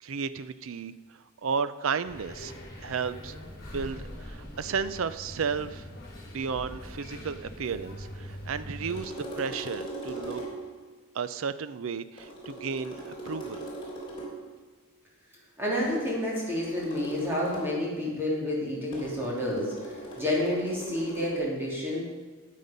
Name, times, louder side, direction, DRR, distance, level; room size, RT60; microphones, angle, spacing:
voice 1, 0.0-2.5 2.8-3.4 3.7-5.9 6.3-10.4 11.1-13.6, right 6 dB, 75° right, 14 dB, 0.5 m, -33 dB
sound 1, 2.0-9.0, equal, 45° left, 2.9 m, -42 dB
sound 2, 8.8-10.8 12.2-14.5 15.8-17.8 18.9-21.3, right 1 dB, 25° left, 3.3 m, -40 dB
voice 2, 15.6-19.7 20.2-22.0, left 1 dB, 10° right, -5 dB, 3.1 m, -29 dB
12.5 x 8.5 x 5.2 m, 1.4 s
head